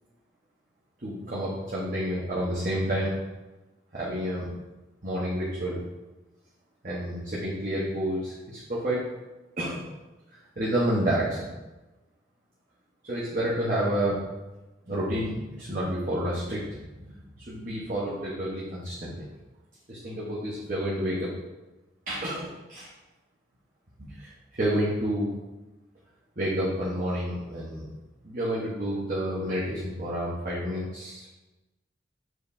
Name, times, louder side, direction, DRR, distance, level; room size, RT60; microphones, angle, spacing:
voice 1, 1.0-3.1 3.9-4.5 5.0-5.8 6.8-9.1 9.6-9.8 10.6-11.5 13.0-14.2 14.9-16.6 17.0-19.2 19.9-21.3 22.1-22.9 24.0-25.3 26.4-27.9 28.2-31.3, equal, 45° right, -7 dB, 1.1 m, -29 dB
7.6 x 4.7 x 2.7 m, 1.1 s
head